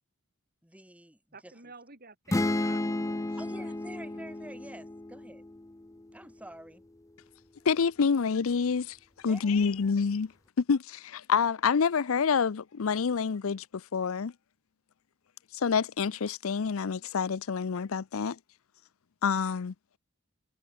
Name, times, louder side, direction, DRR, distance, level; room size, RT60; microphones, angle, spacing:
voice 1, 0.6-1.5 3.4-5.4 6.1-6.8 9.3-9.6, right 1 dB, 5° right, 2.2 m, -48 dB
voice 2, 1.3-3.8 4.1-4.3, right 4 dB, 45° right, 7.4 m, -51 dB
sound 1, 2.3-6.0, left 2 dB, 15° left, 0.5 m, -32 dB
voice 3, 7.7-9.0 9.2-10.3 10.6-14.3 15.5-18.4 19.2-19.7, left 6 dB, 70° left, 0.5 m, -27 dB
head